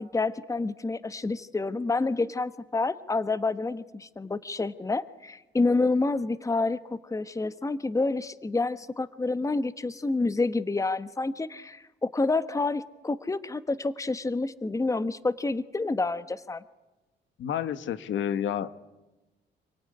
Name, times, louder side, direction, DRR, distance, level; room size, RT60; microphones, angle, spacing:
voice 1, 0.0-16.6, left 3 dB, 15° left, 14 dB, 1.1 m, -28 dB
voice 2, 17.4-18.8, left 9 dB, 75° left, 13 dB, 1.3 m, -30 dB
27.5 x 18.5 x 9.8 m, 1.1 s
cardioid pair, 90°, 20 cm